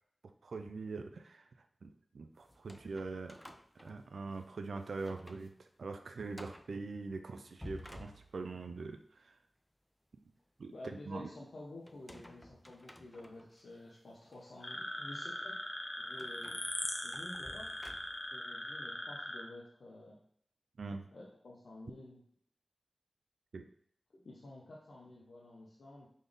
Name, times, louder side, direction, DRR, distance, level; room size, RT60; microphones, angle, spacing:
voice 1, 0.4-1.5 1.8-3.4 3.8-5.5 5.8-9.4 10.6-11.3 20.8-21.0 23.5-23.7, right 3 dB, 85° right, 7 dB, 0.3 m, -43 dB
sound 1, 2.4-4.5 4.9-5.5 5.8-5.9 6.3-6.7 7.4-8.7 11.9-13.6 14.3-14.4 16.2-18.4, left 1 dB, 10° left, 0.3 m, -53 dB
voice 2, 10.7-15.7 16.0-16.6 17.0-17.7 18.3-20.2 21.1-22.2 24.1-26.1, left 2 dB, 80° left, -5 dB, 0.7 m, -51 dB
sound 2, 14.6-19.4, left 1 dB, 40° left, 0.8 m, -40 dB
4.0 x 3.4 x 3.5 m, 0.65 s
wide cardioid pair, 70°, 0 cm